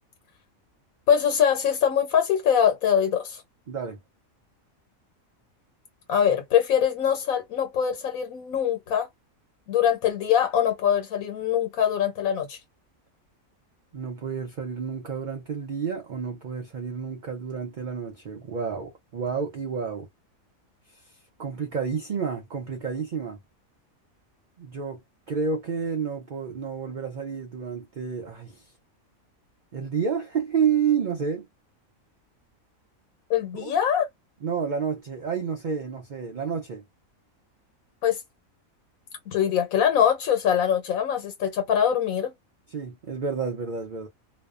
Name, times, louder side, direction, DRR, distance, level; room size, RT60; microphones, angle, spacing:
voice 1, 1.1-3.4 6.1-9.1 9.7-12.6 33.3-34.1 38.0-38.2 39.3-42.3, left 9 dB, 80° left, 1.2 m, -23 dB
voice 2, 3.7-4.0 13.9-20.1 20.9-21.0 21.4-23.4 24.6-25.0 25.3-28.7 29.7-31.5 33.5-33.7 34.4-36.8 42.7-44.1, right 6 dB, 55° right, 0.5 m, -30 dB
2.6 x 2.1 x 2.3 m
omnidirectional pair, 1.4 m